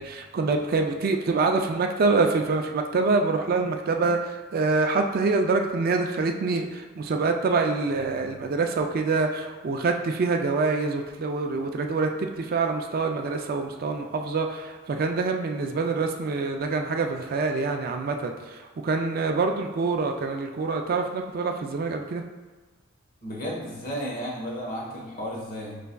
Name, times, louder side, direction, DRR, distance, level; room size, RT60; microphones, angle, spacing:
voice 1, 0.0-22.2, right 3 dB, 50° right, 4 dB, 0.4 m, -26 dB
voice 2, 23.2-25.8, equal, 50° left, -4 dB, 1.2 m, -33 dB
5.4 x 3.3 x 2.3 m, 1.3 s
head